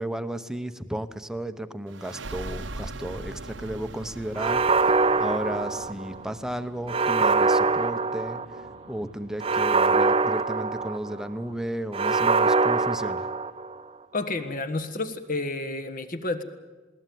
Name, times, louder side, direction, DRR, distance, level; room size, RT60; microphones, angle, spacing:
voice 1, 0.0-8.4 8.9-13.3, right 1 dB, 5° right, 9 dB, 0.8 m, -34 dB
sound 1, 1.9-13.1, right 2 dB, 80° right, 1.0 m, -43 dB
sound 2, 4.4-6.2 6.9-8.7 9.4-11.3 11.9-13.8, right 4 dB, 30° right, 0.6 m, -23 dB
voice 2, 14.1-16.4, left 2 dB, 50° left, 9 dB, 1.5 m, -30 dB
20.5 x 18.0 x 9.3 m, 1.3 s
head